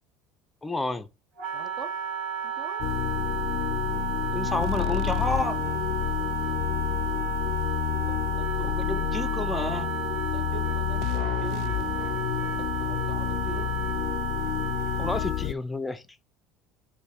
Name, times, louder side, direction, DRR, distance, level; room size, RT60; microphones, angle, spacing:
voice 1, 0.6-1.1 4.3-5.6 8.6-9.9 15.0-16.0, left 2 dB, 10° left, 0.6 m, -30 dB
Wind instrument woodwind instrument, 1.4-15.5, right 7 dB, 65° right, 2.0 m, -33 dB
voice 2, 1.5-2.0 2.4-3.0 8.1-8.8 10.3-11.9 12.4-13.7, right 7 dB, 40° right, 1.1 m, -43 dB
sound 1, 2.8-15.5, left 17 dB, 65° left, 0.3 m, -29 dB
5.2 x 3.6 x 5.2 m
cardioid pair, 150°, 0 cm